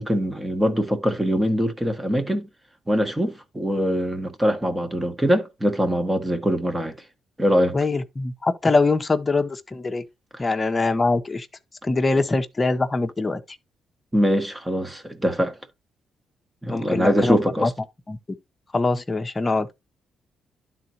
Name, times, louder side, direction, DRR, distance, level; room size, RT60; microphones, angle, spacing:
voice 1, 0.0-2.5 2.9-6.9 7.4-7.8 14.1-15.6 16.6-17.7, equal, 10° right, 1.5 m, -23 dB
voice 2, 7.7-10.0 10.4-11.5 11.8-13.4 16.7-17.7 18.1-18.2 18.7-19.7, left 3 dB, 25° left, 1.0 m, -23 dB
12.0 x 3.9 x 2.9 m
cardioid pair, 90°, 0 cm